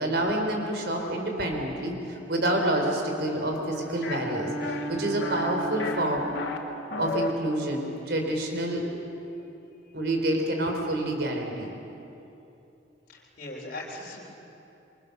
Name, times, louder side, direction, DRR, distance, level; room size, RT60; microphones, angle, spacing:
voice 1, 0.0-6.2 7.0-9.2 9.9-11.7, right 1 dB, 60° right, 2 dB, 4.3 m, -28 dB
Bowed string instrument, 3.7-6.8, right 1 dB, 5° left, 3.7 m, -36 dB
sound 1, 4.0-4.2 4.6-4.9 5.2-5.5 5.8-6.6 6.9-7.3, left 3 dB, 70° left, 2.5 m, -32 dB
voice 2, 13.1-14.3, left 2 dB, 45° left, -3 dB, 3.7 m, -39 dB
28.5 x 23.5 x 6.9 m, 2.9 s
head